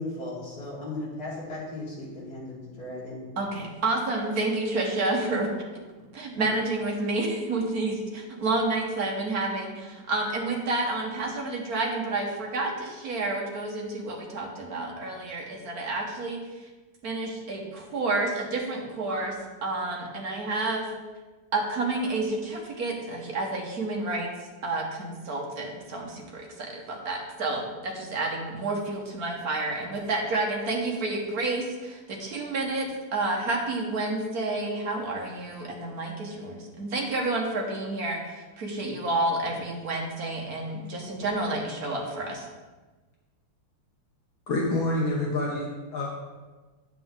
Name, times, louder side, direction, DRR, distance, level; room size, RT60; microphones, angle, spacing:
voice 1, 0.0-3.2, left 2 dB, 45° left, -6 dB, 3.2 m, -36 dB
voice 2, 3.4-5.5 6.1-16.4 17.0-19.3 19.6-20.9 21.5-24.3 24.6-42.5, right 2 dB, 50° right, 0 dB, 1.6 m, -30 dB
voice 3, 44.5-46.1, left 1 dB, 65° left, -2 dB, 1.8 m, -27 dB
9.2 x 7.8 x 3.7 m, 1.3 s
omnidirectional pair, 2.4 m